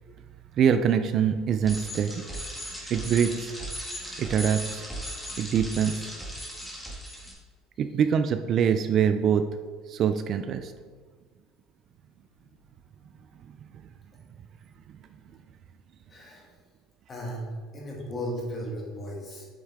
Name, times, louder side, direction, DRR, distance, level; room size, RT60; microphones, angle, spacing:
voice 1, 0.6-2.2 2.8-3.6 4.2-4.8 5.4-6.1 7.8-9.5 9.9-10.7, right 8 dB, 40° right, 9 dB, 0.3 m, -24 dB
Bicycle, 1.6-7.3, equal, 5° left, 1.6 m, -37 dB
voice 2, 16.1-16.4 17.1-19.4, equal, 25° left, -2 dB, 2.0 m, -35 dB
8.0 x 5.4 x 3.5 m, 1.5 s
cardioid pair, 145°, 0 cm